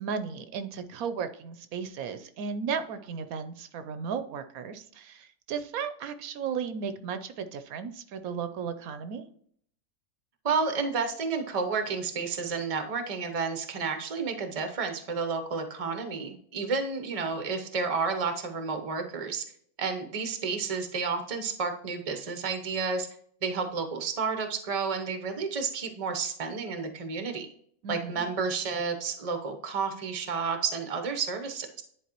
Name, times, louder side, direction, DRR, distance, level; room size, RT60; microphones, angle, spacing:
voice 1, 0.0-9.3 27.8-28.3, right 6 dB, 80° right, 10 dB, 1.1 m, -35 dB
voice 2, 10.4-19.4 19.8-23.1 23.4-27.5 27.9-31.8, right 5 dB, 30° right, 6 dB, 0.7 m, -31 dB
10.5 x 4.1 x 2.9 m, 0.63 s
omnidirectional pair, 1.5 m